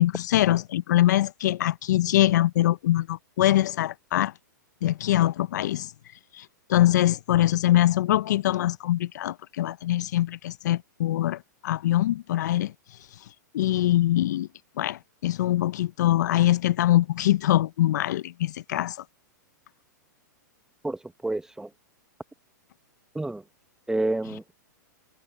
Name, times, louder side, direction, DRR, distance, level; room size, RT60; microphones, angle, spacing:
voice 1, 0.0-4.3 4.8-5.9 6.3-12.7 13.5-14.5 14.8-19.0, left 14 dB, 65° left, 0.7 m, -23 dB
voice 2, 20.8-21.7 23.1-23.4 23.9-24.5, right 2 dB, 5° right, 1.1 m, -29 dB
hypercardioid pair, 115°, 10 cm